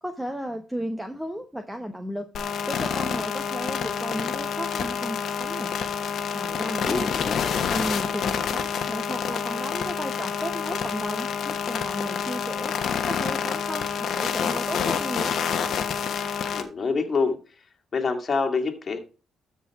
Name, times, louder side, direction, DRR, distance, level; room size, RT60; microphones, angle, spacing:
voice 1, 0.0-2.3 2.7-5.7 6.3-7.1 7.6-12.7 13.0-15.4, equal, 5° right, 6 dB, 1.0 m, -34 dB
sound 1, 2.3-16.6, left 7 dB, 65° left, 1.3 m, -28 dB
voice 2, 6.9-7.6 16.5-17.6 17.9-19.0, left 4 dB, 40° left, 4 dB, 1.9 m, -27 dB
13.0 x 4.6 x 4.7 m, 0.33 s
cardioid pair, 90°, 0 cm